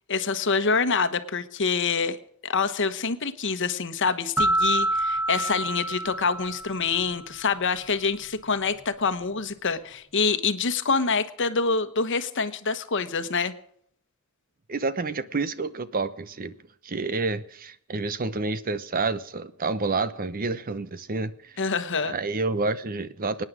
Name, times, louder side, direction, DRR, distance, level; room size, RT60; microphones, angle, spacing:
voice 1, 0.1-2.2 2.4-13.5 21.6-22.1, left 5 dB, 55° left, 1.2 m, -26 dB
sound 1, 4.4-7.1, right 1 dB, 10° right, 0.5 m, -26 dB
voice 2, 14.7-16.6 16.8-21.6 22.0-23.4, right 3 dB, 40° right, 0.8 m, -29 dB
24.5 x 9.6 x 5.0 m
head